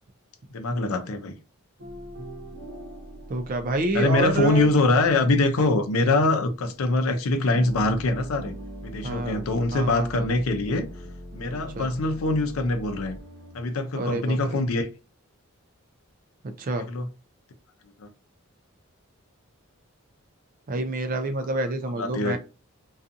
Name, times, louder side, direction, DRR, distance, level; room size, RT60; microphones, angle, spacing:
voice 1, 0.5-1.3 3.9-8.5 8.8-10.9 11.3-13.2 13.5-14.9 16.9-17.0 18.0-18.1 22.0-22.4, left 2 dB, 80° left, 0.5 m, -23 dB
sound 1, 1.8-7.0 7.3-13.6, equal, 65° right, 0.8 m, -42 dB
voice 2, 3.3-4.7 9.0-9.5 9.7-10.3 11.7-11.9 13.9-14.6 16.4-16.9 20.7-22.4, right 2 dB, 40° right, 0.4 m, -28 dB
2.6 x 2.3 x 2.5 m
head